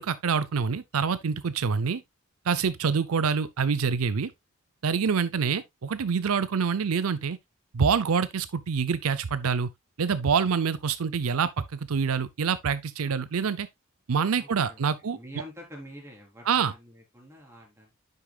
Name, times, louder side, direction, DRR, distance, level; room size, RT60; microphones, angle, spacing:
voice 1, 0.0-2.0 2.5-4.3 4.8-7.4 7.7-9.7 10.0-13.7 14.1-15.2 16.5-16.7, right 6 dB, 80° right, 0.5 m, -26 dB
voice 2, 14.4-17.9, equal, 15° right, 3.9 m, -46 dB
9.9 x 6.8 x 2.3 m
head